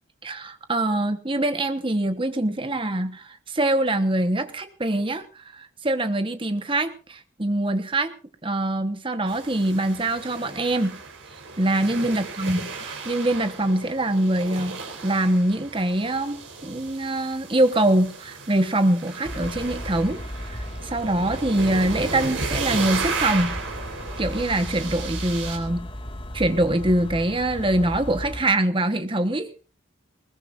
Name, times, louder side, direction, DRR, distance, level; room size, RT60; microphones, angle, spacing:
voice 1, 0.2-5.2 5.5-8.1 8.4-11.0 11.6-20.2 20.5-23.6 24.2-25.9 26.3-29.5, right 1 dB, 25° right, 9 dB, 1.1 m, -24 dB
sound 1, 9.3-25.6, right 4 dB, 80° right, 3.8 m, -34 dB
sound 2, 19.2-28.4, equal, 25° left, 1.8 m, -35 dB
20.5 x 20.0 x 2.5 m, 0.36 s
head